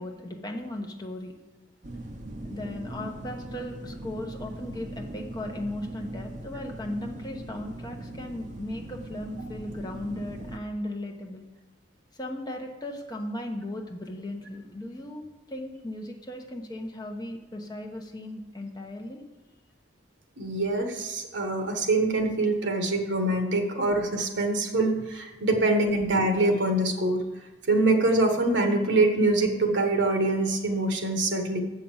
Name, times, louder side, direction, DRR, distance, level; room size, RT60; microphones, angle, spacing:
voice 1, 0.0-1.3 2.4-11.5 12.1-19.2, left 1 dB, 20° left, 2 dB, 0.9 m, -37 dB
sound 1, 1.8-10.6, right 1 dB, 40° right, 0.7 m, -40 dB
voice 2, 20.4-27.2 27.7-31.6, right 2 dB, 75° right, 5 dB, 1.3 m, -24 dB
7.4 x 5.5 x 7.2 m, 1.1 s
head